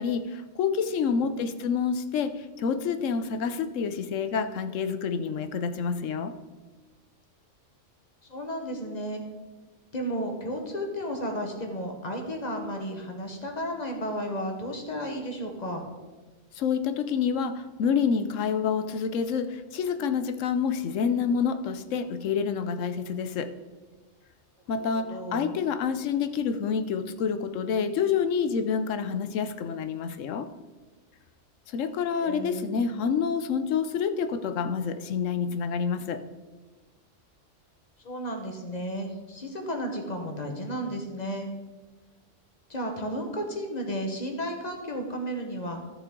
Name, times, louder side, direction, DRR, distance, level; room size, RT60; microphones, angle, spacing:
voice 1, 0.0-6.3 16.5-23.5 24.7-30.5 31.7-36.2, left 6 dB, 85° left, 10 dB, 1.0 m, -28 dB
voice 2, 1.2-1.5 8.3-9.2 9.9-15.9 24.8-25.6 31.8-32.8 38.0-41.5 42.7-45.8, equal, 35° left, 3 dB, 1.3 m, -33 dB
14.0 x 6.7 x 3.7 m, 1.3 s
omnidirectional pair, 1.3 m